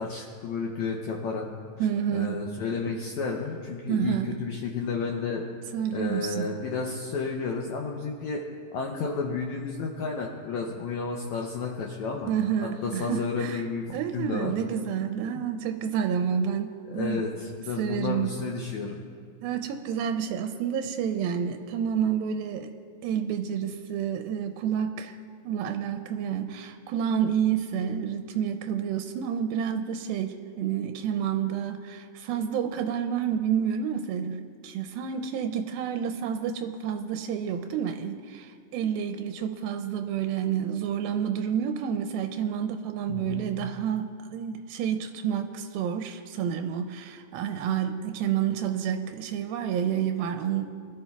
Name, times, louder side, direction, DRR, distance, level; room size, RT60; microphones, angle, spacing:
voice 1, 0.0-1.5 1.8-5.4 5.9-8.4 8.7-12.3 12.6-14.5 16.9-19.0 43.1-43.5, left 4 dB, 80° left, 0 dB, 1.6 m, -32 dB
voice 2, 1.8-2.4 3.9-4.4 5.7-6.6 12.3-13.6 13.9-17.2 17.8-18.3 19.4-22.7 23.0-25.2 25.5-50.7, right 8 dB, 85° right, 6 dB, 2.4 m, -29 dB
22.0 x 12.5 x 2.3 m, 2.1 s
omnidirectional pair, 4.2 m